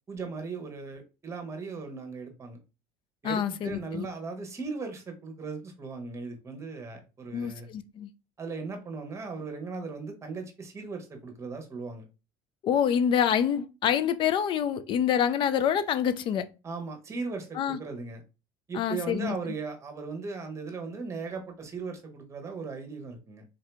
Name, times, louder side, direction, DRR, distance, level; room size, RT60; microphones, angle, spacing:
voice 1, 0.1-2.6 3.2-7.7 8.4-12.0 16.6-18.2 18.7-23.4, right 4 dB, 25° right, 1.1 m, -37 dB
voice 2, 3.2-4.1 7.3-8.1 12.6-16.5 17.5-17.8 18.7-19.4, left 8 dB, 45° left, 0.5 m, -26 dB
3.8 x 2.8 x 3.3 m
supercardioid pair, 110°, 11 cm